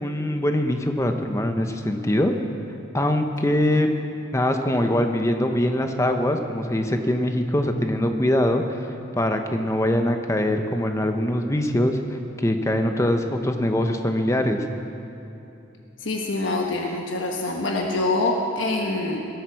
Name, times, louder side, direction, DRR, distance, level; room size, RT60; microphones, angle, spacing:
voice 1, 0.0-2.3 2.9-3.9 4.3-8.8 9.2-12.0 12.4-14.6, left 1 dB, 15° left, 5 dB, 0.8 m, -23 dB
voice 2, 16.0-19.2, left 2 dB, 70° left, 1 dB, 1.2 m, -25 dB
19.0 x 13.0 x 4.7 m, 2.9 s
head